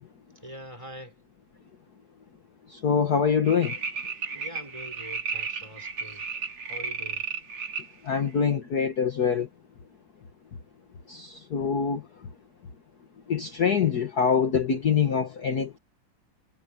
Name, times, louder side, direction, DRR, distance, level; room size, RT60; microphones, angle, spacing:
voice 1, 0.4-1.1 4.3-6.2 6.7-7.2, equal, 15° right, 6.0 m, -43 dB
voice 2, 2.7-3.8 8.0-9.5 11.1-12.0 13.3-15.8, left 6 dB, 50° left, 1.8 m, -24 dB
sound 1, 3.4-7.9 8.4-8.5, right 5 dB, 85° right, 4.2 m, -34 dB
omnidirectional pair, 2.3 m